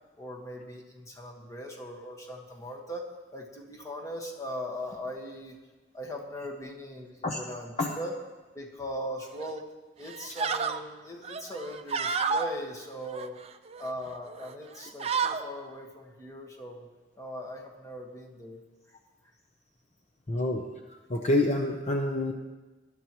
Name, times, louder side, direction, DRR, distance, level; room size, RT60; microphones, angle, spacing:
voice 1, 0.2-5.6 5.9-8.1 8.5-9.7 10.0-13.4 13.8-16.9 17.2-18.6, equal, 15° left, -1 dB, 1.5 m, -39 dB
sound 1, 9.4-9.6 10.0-10.8 11.2-12.5 13.0-13.9 14.3-14.5 14.8-15.4, right 5 dB, 35° right, 0.5 m, -31 dB
voice 2, 20.3-20.6 21.1-22.3, left 1 dB, 40° left, 2 dB, 0.8 m, -27 dB
19.5 x 11.5 x 3.1 m, 1.2 s
head